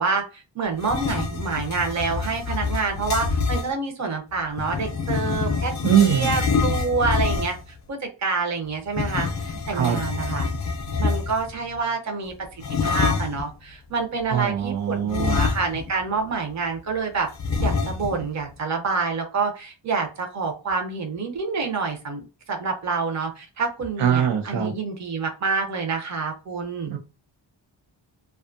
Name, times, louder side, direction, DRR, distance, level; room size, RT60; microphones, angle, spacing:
voice 1, 0.0-10.5 11.0-17.3 17.6-26.9, right 4 dB, 35° right, 3 dB, 0.6 m, -27 dB
sound 1, 0.8-3.7 4.5-7.7 8.9-11.5 12.6-13.5 15.1-16.0 16.3-16.4 17.4-18.3, left 4 dB, 40° left, 0.4 m, -26 dB
voice 2, 5.8-6.4 9.7-10.0 14.3-15.4 24.0-24.7 26.8-27.0, right 9 dB, 85° right, 5 dB, 0.7 m, -22 dB
2.6 x 2.3 x 2.5 m, 0.31 s
wide cardioid pair, 175°, 48 cm